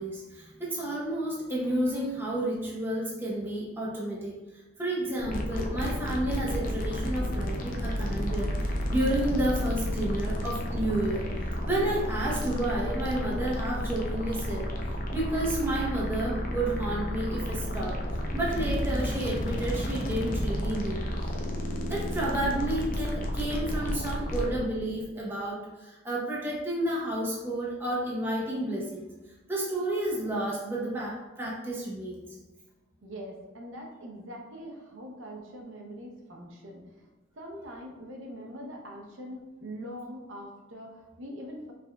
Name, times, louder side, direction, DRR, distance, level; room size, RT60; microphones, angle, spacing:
voice 1, 0.0-4.3 4.8-11.3 11.6-14.7 15.1-21.0 21.9-29.1 29.5-32.2, right 1 dB, 10° right, -5 dB, 0.8 m, -31 dB
sound 1, 5.2-24.6, equal, 45° left, 0.5 m, -31 dB
voice 2, 33.0-37.1 37.3-41.7, equal, 75° right, 0 dB, 0.7 m, -43 dB
5.0 x 3.4 x 2.3 m, 1.1 s
head